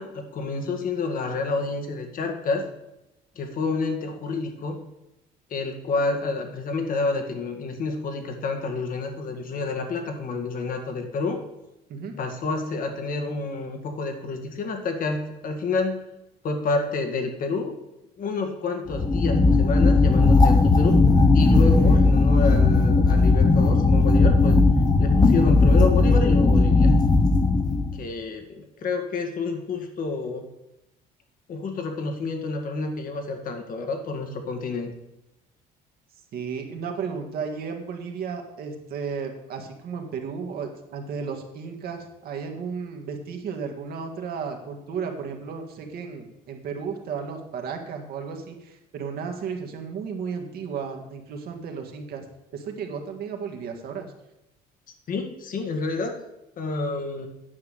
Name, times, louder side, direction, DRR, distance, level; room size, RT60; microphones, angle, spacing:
voice 1, 0.0-2.7 3.4-4.8 5.5-11.4 12.2-16.0 16.4-17.8 18.2-21.0 21.3-24.6 25.0-26.9 27.9-30.5 31.5-34.9 55.1-56.2 56.6-57.3, left 3 dB, 55° left, 5 dB, 1.9 m, -29 dB
sound 1, 18.9-28.0, left 3 dB, 25° left, 0.9 m, -17 dB
voice 2, 21.5-22.2 36.3-52.2 52.5-54.1, right 6 dB, 65° right, 3 dB, 1.8 m, -34 dB
9.6 x 5.9 x 6.8 m, 0.91 s
cardioid pair, 110°, 17 cm